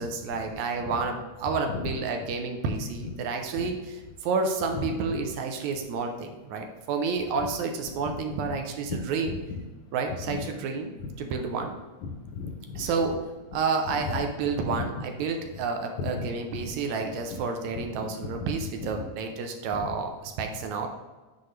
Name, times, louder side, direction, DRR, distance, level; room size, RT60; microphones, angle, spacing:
voice 1, 0.0-4.0 4.2-9.4 9.9-11.7 12.8-13.2 13.5-20.9, right 4 dB, 80° right, 4 dB, 2.0 m, -30 dB
voice 2, 4.7-5.2 7.1-7.2 8.0-8.6 8.9-9.0 9.3-9.6 10.1-10.5 11.0-11.1 12.0-13.1 13.9-14.2 14.7-14.8 16.0-16.3 16.7-16.8 17.3-17.4 17.7-17.9 18.8-19.1 19.7-19.9, left 5 dB, 75° left, 3 dB, 2.3 m, -35 dB
9.4 x 4.1 x 3.2 m, 1.2 s
omnidirectional pair, 3.4 m